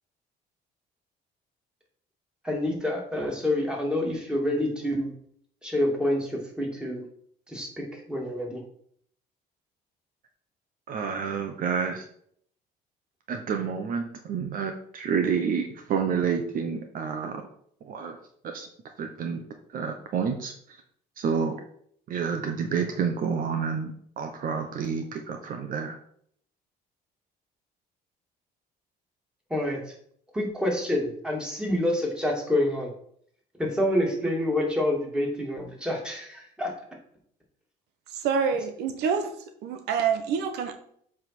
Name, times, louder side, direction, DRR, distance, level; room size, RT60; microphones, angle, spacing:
voice 1, 2.4-5.1 5.6-7.0 7.5-8.6 29.5-29.9 30.3-32.9 33.6-36.7, left 1 dB, 5° right, -1 dB, 2.5 m, -27 dB
voice 2, 10.9-12.1 13.3-17.4 17.8-18.2 18.4-18.7 19.0-19.4 19.7-20.8 21.2-21.6 22.1-26.0, right 6 dB, 55° right, 5 dB, 0.9 m, -29 dB
voice 3, 38.1-39.4 39.6-40.7, right 6 dB, 85° right, 8 dB, 1.0 m, -27 dB
7.7 x 3.7 x 6.0 m, 0.65 s
cardioid pair, 110°, 17 cm